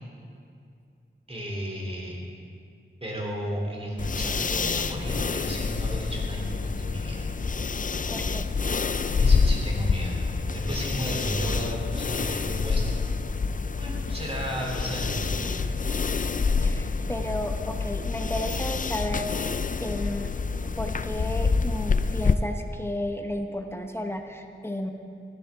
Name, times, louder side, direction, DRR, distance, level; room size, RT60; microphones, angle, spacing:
voice 1, 1.3-2.2 3.0-7.3 9.2-10.3 10.5-13.0 13.8-15.8, equal, 30° right, -3 dB, 3.1 m, -33 dB
sound 1, 4.0-22.4, left 4 dB, 40° left, 0.4 m, -27 dB
voice 2, 7.9-8.5 16.6-19.5 19.8-20.3 20.8-24.9, left 1 dB, 10° left, 4 dB, 1.0 m, -33 dB
15.5 x 10.5 x 3.6 m, 2.3 s
wide cardioid pair, 45°, 21 cm